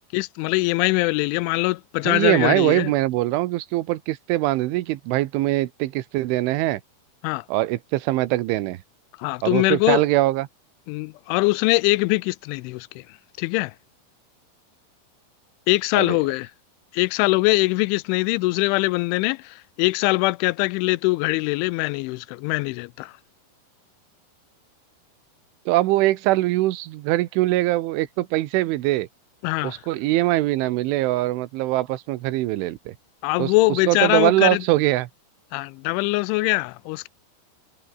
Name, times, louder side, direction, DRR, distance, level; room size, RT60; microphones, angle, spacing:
voice 1, 0.1-2.9 7.2-7.4 9.2-10.0 10.9-12.9 13.4-13.7 15.7-16.5 16.9-23.1 29.4-29.8 33.2-34.6 35.5-37.1, left 23 dB, 90° left, 3.1 m, -22 dB
voice 2, 2.1-6.8 7.5-8.8 9.4-10.5 15.9-16.2 25.7-29.1 29.6-33.0 33.4-35.1, right 17 dB, 90° right, 3.6 m, -22 dB
omnidirectional pair, 5.4 m